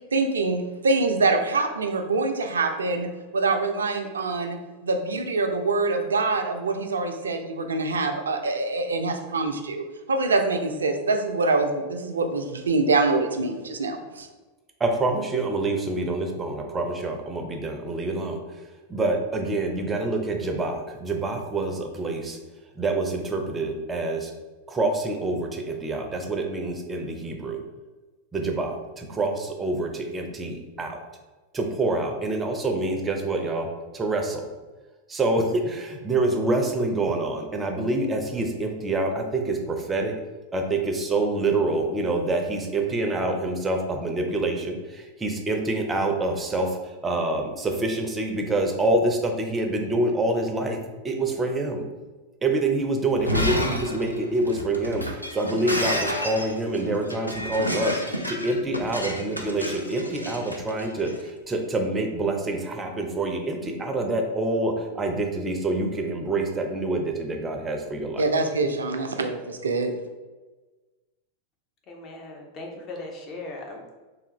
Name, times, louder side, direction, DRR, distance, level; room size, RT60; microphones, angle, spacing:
voice 1, 0.1-14.3 68.2-69.9, right 3 dB, 70° right, 5 dB, 0.4 m, -25 dB
voice 2, 14.8-18.4 18.9-22.4 22.8-24.3 24.7-27.6 28.3-31.0 31.5-33.7 33.9-34.5 35.1-40.1 40.5-46.8 47.0-50.8 51.0-51.8 52.4-68.2, right 2 dB, 15° right, 3 dB, 0.5 m, -26 dB
Shatter, 53.1-61.2, left 1 dB, 90° left, 0.4 m, -30 dB
voice 3, 71.9-73.9, left 2 dB, 30° left, 1 dB, 0.7 m, -38 dB
3.3 x 2.4 x 3.0 m, 1.2 s
figure-of-eight pair, 90°, 0 cm